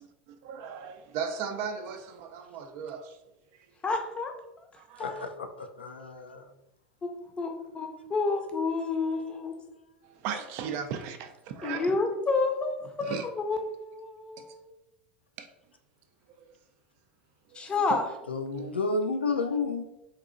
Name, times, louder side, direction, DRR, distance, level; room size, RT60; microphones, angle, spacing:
voice 1, 0.3-3.2 4.8-5.3 10.0-11.9 13.0-13.3 14.4-14.5 15.4-15.5 17.5-18.0 18.5-18.7, right 7 dB, 45° right, 0.4 m, -37 dB
voice 2, 3.8-4.3 5.0-5.4 7.0-9.6 11.6-14.7 17.5-18.0, left 3 dB, 20° left, 0.6 m, -30 dB
voice 3, 5.0-6.5 18.3-19.8, left 3 dB, 80° left, 0.3 m, -31 dB
4.0 x 2.7 x 2.5 m
figure-of-eight pair, 80°, 6 cm